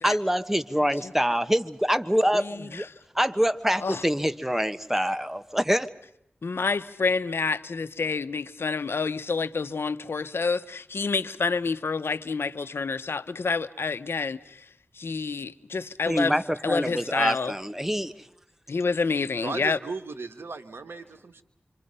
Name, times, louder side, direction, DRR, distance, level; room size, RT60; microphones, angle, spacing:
voice 1, 0.0-2.9 3.1-5.9 16.1-18.1, equal, 10° right, 1.3 m, -25 dB
voice 2, 2.3-2.9 3.8-4.0 6.4-14.6 15.0-16.4 16.6-17.5 18.7-19.8, left 4 dB, 80° left, 0.9 m, -28 dB
voice 3, 19.4-21.4, right 4 dB, 80° right, 1.7 m, -36 dB
26.5 x 26.0 x 5.6 m
cardioid pair, 40°, 4 cm